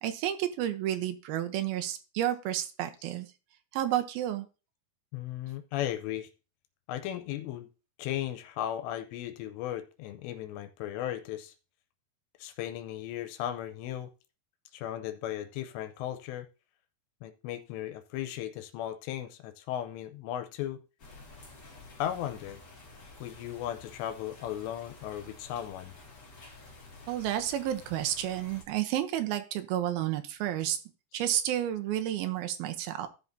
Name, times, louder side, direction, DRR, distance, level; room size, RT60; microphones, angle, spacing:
voice 1, 0.0-3.3 3.7-4.5 27.1-30.8 31.1-33.1, right 12 dB, 75° right, 7 dB, 2.3 m, -31 dB
voice 2, 5.1-6.3 6.9-7.7 8.0-11.5 12.4-14.1 14.7-16.5 17.2-20.8 22.0-22.6 23.2-25.9, left 12 dB, 90° left, 9 dB, 2.8 m, -36 dB
sound 1, 21.0-28.6, left 2 dB, 35° left, 2.1 m, -51 dB
16.0 x 5.8 x 2.7 m, 0.31 s
omnidirectional pair, 5.0 m